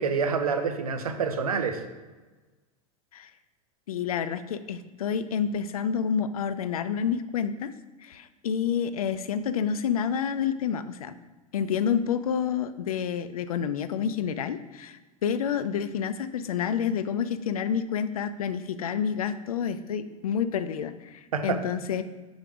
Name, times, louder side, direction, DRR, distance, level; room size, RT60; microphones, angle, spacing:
voice 1, 0.0-1.8 21.3-21.6, right 5 dB, 75° right, 7 dB, 0.7 m, -27 dB
voice 2, 3.9-7.7 8.0-11.1 11.5-22.0, left 7 dB, 75° left, 12 dB, 0.4 m, -29 dB
4.9 x 4.0 x 4.8 m, 1.2 s
figure-of-eight pair, 85°, 19 cm